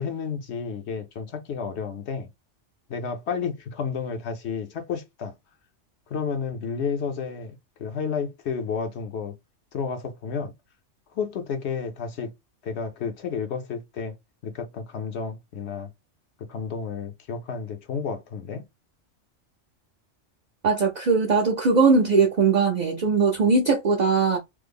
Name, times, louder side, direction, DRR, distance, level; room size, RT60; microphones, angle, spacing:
voice 1, 0.0-2.3 2.9-5.3 6.1-9.4 9.7-10.5 11.1-12.3 12.6-14.1 14.4-15.9 16.5-18.6, left 6 dB, 70° left, 0.9 m, -31 dB
voice 2, 20.6-24.4, right 4 dB, 50° right, 0.6 m, -20 dB
3.2 x 2.0 x 3.4 m
omnidirectional pair, 1.2 m